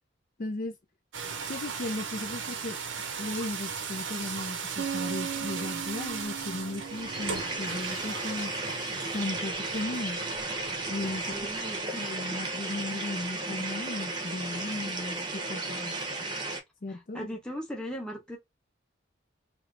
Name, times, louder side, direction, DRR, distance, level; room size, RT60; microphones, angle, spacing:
voice 1, 0.4-0.8 1.5-2.8 3.2-8.5 9.1-10.2 10.9-11.5 12.0-16.0 16.8-17.4, left 2 dB, 45° left, 0.5 m, -36 dB
sound 1, 1.1-11.8, right 6 dB, 75° right, 0.7 m, -38 dB
sound 2, 4.8-8.7, right 7 dB, 50° right, 0.3 m, -39 dB
sound 3, 6.7-16.6, right 2 dB, 25° right, 0.8 m, -34 dB
voice 2, 11.3-12.0 16.9-18.4, equal, 5° left, 0.9 m, -38 dB
3.1 x 2.8 x 2.6 m
head